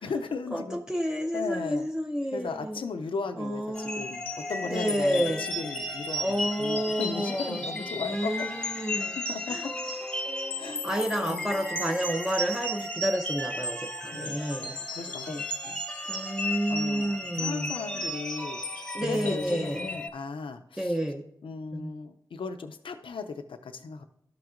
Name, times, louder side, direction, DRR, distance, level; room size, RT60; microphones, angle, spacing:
voice 1, 0.0-0.8 1.3-1.9 2.3-8.3 8.9-9.6 10.6-11.0 11.3-11.5 14.0-15.8 16.1-16.4 16.7-21.0 21.4-24.1, left 4 dB, 80° left, 8 dB, 0.4 m, -36 dB
voice 2, 0.5-2.8 3.4-4.0 4.7-5.4 6.2-7.6 8.0-9.2 9.5-9.7 10.8-14.8 15.3-15.4 16.1-18.1 18.9-19.9 20.8-21.2 21.7-22.0, equal, 5° right, 2 dB, 0.5 m, -30 dB
sound 1, 3.7-20.1, left 1 dB, 10° left, 0.9 m, -34 dB
13.0 x 5.9 x 2.5 m, 0.75 s
cardioid pair, 55°, 9 cm